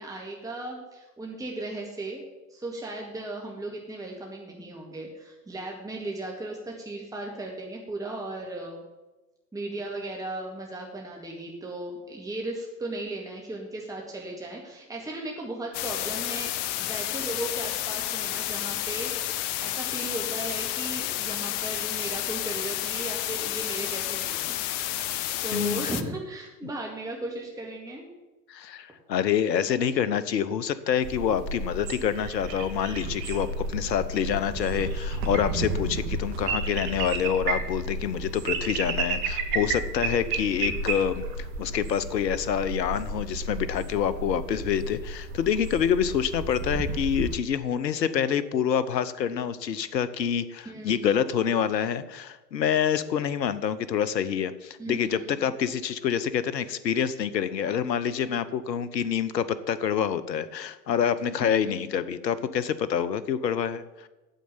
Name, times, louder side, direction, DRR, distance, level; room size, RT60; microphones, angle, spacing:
voice 1, 0.0-2.2 2.5-8.8 9.5-16.5 16.8-19.1 19.6-24.6 25.0-25.2 25.4-28.1 50.7-51.2 54.8-55.5 61.4-61.9, right 2 dB, 5° right, -1 dB, 2.0 m, -36 dB
sound 1, 15.7-26.0, left 13 dB, 50° left, 0.9 m, -31 dB
voice 2, 25.5-25.9 28.5-64.1, left 8 dB, 85° left, 15 dB, 0.9 m, -27 dB
sound 2, 31.0-47.4, right 3 dB, 45° right, 1.8 m, -32 dB
9.3 x 7.5 x 8.7 m, 1.1 s
hypercardioid pair, 100°, 49 cm